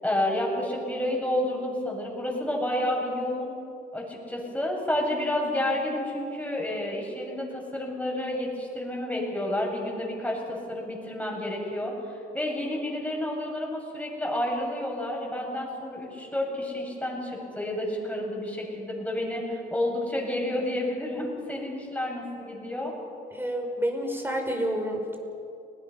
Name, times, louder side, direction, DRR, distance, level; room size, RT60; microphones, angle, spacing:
voice 1, 0.0-3.5 3.9-22.9, left 1 dB, 5° left, -2 dB, 7.5 m, -30 dB
voice 2, 23.3-25.2, equal, 10° right, 2 dB, 5.2 m, -29 dB
30.0 x 20.0 x 5.9 m, 2.6 s
cardioid pair, 90°, 20 cm